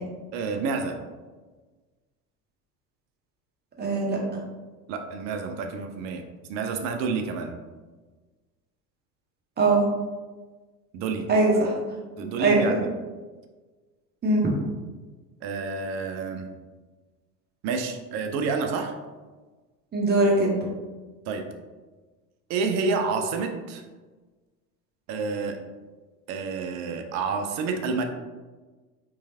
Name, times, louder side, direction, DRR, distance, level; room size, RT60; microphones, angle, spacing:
voice 1, 0.3-1.0 4.9-6.2 6.5-7.6 10.9-11.3 12.2-12.9 15.4-16.5 17.6-18.9 21.3-21.5 22.5-23.8 25.1-25.6 26.3-28.0, right 4 dB, 35° right, 5 dB, 0.5 m, -29 dB
voice 2, 3.8-4.2 9.6-9.9 11.3-11.7 12.4-12.8 14.2-14.5 19.9-20.6, right 2 dB, 20° right, -2 dB, 1.1 m, -21 dB
4.6 x 3.1 x 2.8 m, 1.3 s
figure-of-eight pair, 75°, 48 cm